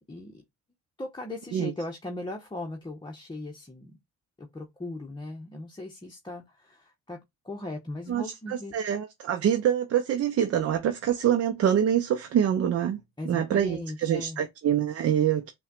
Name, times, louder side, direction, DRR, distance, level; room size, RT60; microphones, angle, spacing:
voice 1, 0.1-0.4 1.0-3.9 4.4-7.2 7.4-8.7 13.2-14.4, left 2 dB, 15° left, 0.9 m, -38 dB
voice 2, 8.1-15.5, right 9 dB, 55° right, 0.6 m, -25 dB
5.5 x 2.3 x 2.4 m
supercardioid pair, 70°, 29 cm